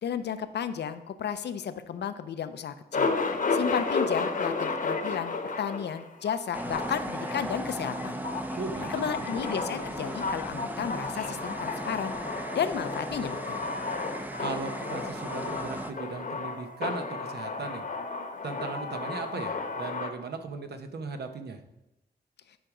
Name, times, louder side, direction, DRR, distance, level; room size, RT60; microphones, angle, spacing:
voice 1, 0.0-3.1 3.5-8.2 8.9-12.1 12.5-13.6, left 8 dB, 80° left, 11 dB, 0.6 m, -33 dB
Male speech man speaking, 2.9-20.1, left 4 dB, 50° left, 1.0 m, -33 dB
sound 1, 6.5-15.9, right 1 dB, 10° right, 0.6 m, -37 dB
voice 2, 8.6-8.9 14.4-17.8 18.4-21.6, right 4 dB, 70° right, 6 dB, 1.0 m, -37 dB
10.5 x 5.1 x 4.9 m, 0.94 s
cardioid pair, 90°, 17 cm